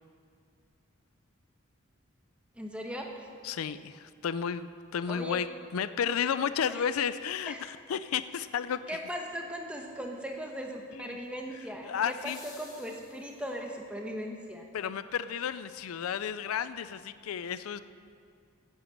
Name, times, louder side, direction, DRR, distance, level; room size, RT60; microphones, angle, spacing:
voice 1, 2.5-3.3 5.1-5.4 6.7-6.9 7.5-7.6 8.9-14.6, equal, 5° right, 1 dB, 1.1 m, -38 dB
voice 2, 3.4-5.5 5.7-8.8 10.9-11.2 11.8-12.4 14.7-17.8, left 7 dB, 85° left, 14 dB, 0.4 m, -32 dB
sound 1, 6.3-6.4 11.9-13.7 15.9-16.0, left 3 dB, 15° left, 1.6 m, -54 dB
10.0 x 9.1 x 7.2 m, 2.4 s
head